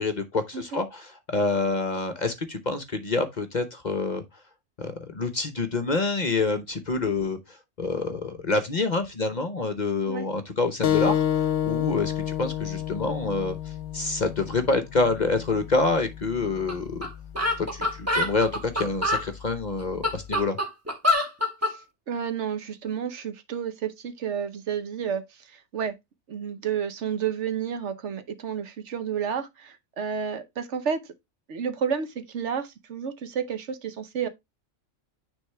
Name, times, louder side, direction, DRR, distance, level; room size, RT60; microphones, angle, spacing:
voice 1, 0.0-4.2 4.8-11.2 11.6-12.1 12.4-13.6 13.9-17.1 17.6-20.6, left 3 dB, 40° left, 0.8 m, -27 dB
sound 1, 10.8-16.0, left 10 dB, 65° left, 1.0 m, -28 dB
sound 2, 16.7-16.8 17.0-17.1 17.4-19.2 19.8-21.7, left 1 dB, 10° right, 1.4 m, -25 dB
voice 2, 21.6-26.0 26.3-31.0 31.5-34.3, right 7 dB, 65° right, 1.1 m, -31 dB
9.6 x 3.6 x 3.3 m
omnidirectional pair, 1.3 m